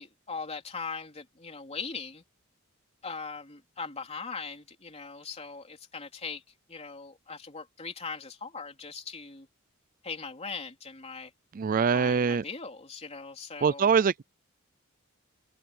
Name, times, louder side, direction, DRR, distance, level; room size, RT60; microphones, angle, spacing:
voice 1, 0.0-2.2 3.0-6.4 6.7-9.5 10.0-11.3 11.9-14.1, left 4 dB, 30° left, 3.6 m, -40 dB
voice 2, 11.5-12.4 13.6-14.2, right 6 dB, 40° right, 0.4 m, -23 dB
head